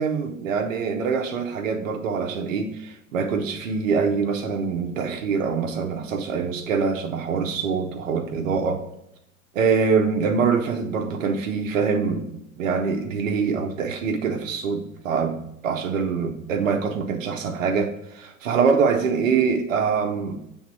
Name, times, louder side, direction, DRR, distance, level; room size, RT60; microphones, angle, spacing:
voice 1, 0.0-8.8 9.5-20.5, right 5 dB, 65° right, 4 dB, 1.0 m, -24 dB
7.2 x 3.6 x 4.4 m, 0.81 s
figure-of-eight pair, 90°, 42 cm